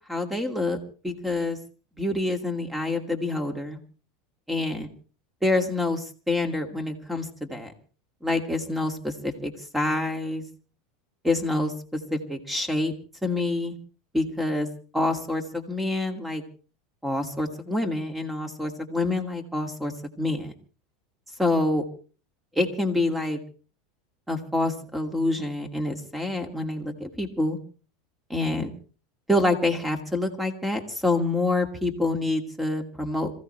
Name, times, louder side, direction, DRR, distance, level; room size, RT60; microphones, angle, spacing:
voice 1, 0.1-1.6 2.0-3.8 4.5-4.9 5.4-7.7 8.2-10.4 11.2-11.7 12.1-12.9 13.2-13.8 14.1-14.7 14.9-16.4 17.0-19.9 20.2-20.5 21.4-21.8 22.6-23.4 24.3-27.6 28.3-28.7 29.3-33.3, left 2 dB, 5° right, 6 dB, 2.5 m, -27 dB
26.5 x 15.0 x 3.3 m, 0.38 s
supercardioid pair, 125°, 2 cm